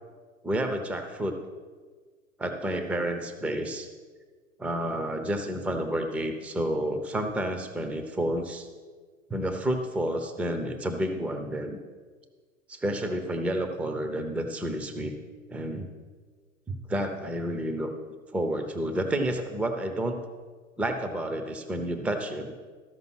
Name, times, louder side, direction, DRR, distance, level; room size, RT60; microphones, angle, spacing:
voice 1, 0.4-1.3 2.4-3.9 4.6-8.7 9.3-11.8 12.7-15.2 15.5-15.9 16.7-17.9 18.3-20.2 20.8-22.5, right 1 dB, 5° right, 6 dB, 0.6 m, -30 dB
13.5 x 5.4 x 6.0 m, 1.5 s
figure-of-eight pair, 95°, 42 cm